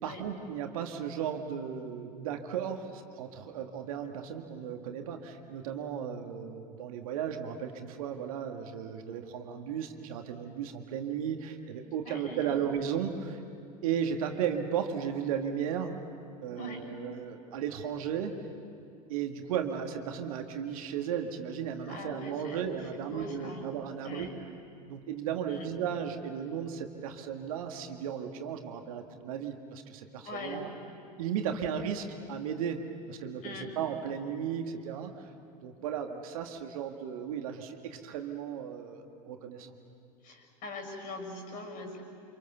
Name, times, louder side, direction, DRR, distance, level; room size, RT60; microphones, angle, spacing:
voice 1, 0.0-13.4 13.8-16.0 16.4-18.3 19.1-24.3 24.9-30.7 31.2-32.8 33.1-35.3 35.6-39.7, right 8 dB, 60° right, 5 dB, 2.0 m, -35 dB
voice 2, 12.0-12.6 16.6-16.9 21.9-22.6 23.0-23.7 24.0-24.4 25.5-25.7 30.2-30.7 33.4-33.7 40.2-42.0, left 1 dB, 40° left, 5 dB, 6.6 m, -41 dB
29.5 x 26.5 x 6.9 m, 2.5 s
figure-of-eight pair, 80°, 20 cm